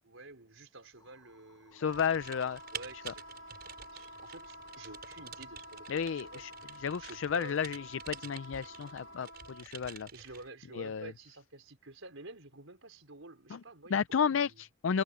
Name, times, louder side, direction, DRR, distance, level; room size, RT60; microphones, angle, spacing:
voice 1, 0.0-2.4 2.7-3.2 3.6-7.6 9.8-14.6, right 2 dB, 80° right, 4.6 m, -51 dB
sound 1, 1.0-9.3, left 3 dB, 20° left, 5.9 m, -65 dB
voice 2, 1.7-2.6 5.9-6.5 6.8-10.1 10.7-11.1 13.5-13.6 13.9-15.0, left 7 dB, 70° left, 0.4 m, -32 dB
Wind instrument woodwind instrument, 1.8-9.7, equal, 90° left, 1.8 m, -50 dB
Typing, 1.9-10.5, right 8 dB, 50° right, 5.8 m, -49 dB
head